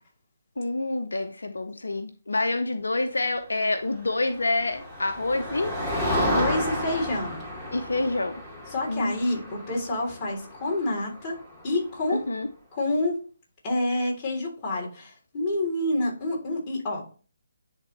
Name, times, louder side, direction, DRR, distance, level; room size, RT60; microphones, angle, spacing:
voice 1, 0.6-5.7 7.7-8.4 8.9-9.4 12.1-12.5, left 2 dB, 80° left, 7 dB, 0.7 m, -27 dB
Motor vehicle (road), 4.1-11.9, left 1 dB, 5° right, 2.1 m, -32 dB
voice 2, 6.1-7.4 8.7-11.4 11.6-12.2 12.7-13.2 13.6-17.0, left 1 dB, 25° left, -5 dB, 3.6 m, -28 dB
10.5 x 3.7 x 3.3 m, 0.39 s
figure-of-eight pair, 150°, 0 cm